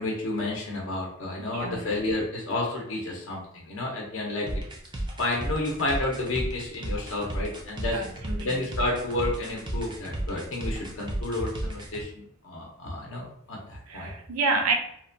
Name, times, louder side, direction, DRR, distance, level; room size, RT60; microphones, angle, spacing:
voice 1, 0.0-4.5 5.2-8.0 8.4-14.1, left 2 dB, 60° left, -2 dB, 0.6 m, -31 dB
voice 2, 1.4-1.8 7.9-8.6 13.9-14.7, right 3 dB, 85° right, 4 dB, 0.5 m, -28 dB
sound 1, 4.5-12.0, right 1 dB, 20° right, 0.4 m, -33 dB
2.8 x 2.1 x 2.5 m, 0.70 s
head